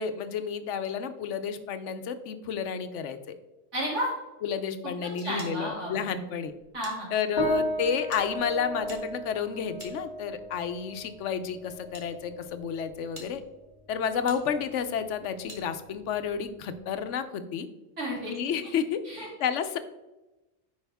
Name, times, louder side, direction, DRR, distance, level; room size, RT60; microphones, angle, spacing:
voice 1, 0.0-3.3 4.4-6.5 7.1-13.4 13.9-17.7 18.3-19.8, left 7 dB, 85° left, 10 dB, 1.0 m, -31 dB
voice 2, 3.7-4.1 5.2-6.1 6.7-7.1 18.0-18.3 19.0-19.3, equal, 90° right, -5 dB, 3.1 m, -32 dB
sound 1, 5.4-7.0 7.2-7.3 8.1-10.5 11.3-12.1 12.6-12.7 13.1-13.3 14.3-14.4 15.5-15.6, right 2 dB, 45° right, 1.5 m, -48 dB
sound 2, 7.4-17.0, equal, 55° left, 2.0 m, -36 dB
9.9 x 4.9 x 3.5 m, 1.0 s
omnidirectional pair, 1.2 m